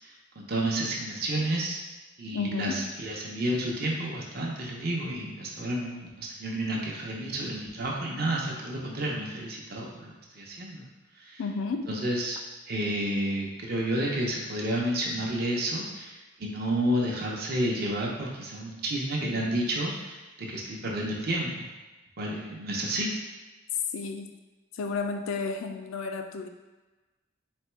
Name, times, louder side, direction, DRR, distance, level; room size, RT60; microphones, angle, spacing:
voice 1, 0.4-1.8 2.2-10.9 11.2-11.4 11.9-12.4 12.7-21.7 22.2-23.1, right 1 dB, 50° right, -2 dB, 0.7 m, -30 dB
voice 2, 2.3-2.8 11.4-11.9 23.9-24.3 24.7-26.5, left 4 dB, 80° left, 6 dB, 0.4 m, -32 dB
4.2 x 2.2 x 4.4 m, 1.2 s
head